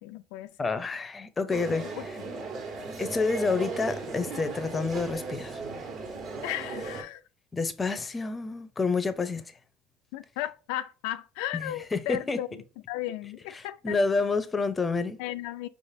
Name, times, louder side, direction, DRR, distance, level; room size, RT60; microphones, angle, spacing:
voice 1, 0.0-0.5 2.0-2.3 6.4-7.2 10.1-13.9 15.2-15.7, left 13 dB, 80° left, 0.3 m, -35 dB
voice 2, 0.6-1.9 3.0-5.6 7.5-9.5 11.5-12.4 13.6-15.2, left 4 dB, 20° left, 0.6 m, -29 dB
sound 1, 1.5-7.0, right 4 dB, 50° right, 1.5 m, -37 dB
5.2 x 3.3 x 2.6 m
cardioid pair, 125°, 0 cm